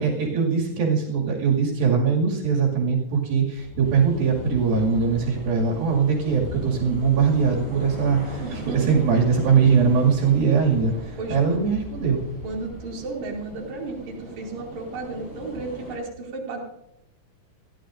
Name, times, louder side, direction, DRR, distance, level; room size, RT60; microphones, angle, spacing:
voice 1, 0.0-12.2, right 6 dB, 80° right, -1 dB, 4.0 m, -21 dB
sound 1, 3.6-12.8, left 3 dB, 40° left, 2.3 m, -40 dB
sound 2, 3.8-16.0, equal, 10° left, 6.8 m, -40 dB
voice 2, 8.4-9.0 11.2-11.7 12.4-16.7, right 3 dB, 55° right, -3 dB, 3.6 m, -33 dB
28.5 x 11.0 x 2.5 m, 0.83 s
omnidirectional pair, 4.1 m